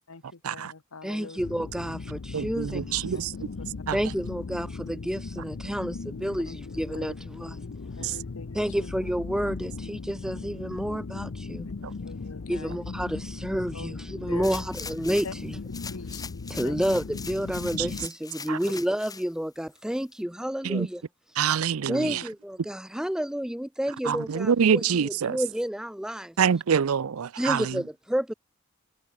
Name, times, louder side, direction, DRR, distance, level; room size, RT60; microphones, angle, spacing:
voice 1, 0.1-1.4 3.6-3.7 6.5-6.6 6.9-7.1 8.0-8.9 12.0-12.8 13.7-13.9 14.3-14.6 15.2-15.3 15.9-16.2 16.6-16.8 18.5-18.6 22.0-22.2, left 4 dB, 90° left, 1.2 m, -43 dB
voice 2, 1.0-3.1 3.9-7.6 8.5-11.7 12.5-15.6 16.5-21.0 21.9-26.3 27.4-28.3, equal, 5° right, 0.5 m, -30 dB
sound 1, 1.4-18.1, left 4 dB, 60° left, 0.6 m, -38 dB
voice 3, 2.3-3.5 3.9-4.0 8.0-8.2 11.8-11.9 17.8-17.9 18.5-18.6 20.6-20.9 21.4-22.2 24.0-25.4 26.4-27.8, right 7 dB, 80° right, 0.5 m, -26 dB
sound 2, 14.4-15.4 15.7-19.3 19.8-19.9, left 5 dB, 20° left, 1.4 m, -41 dB
head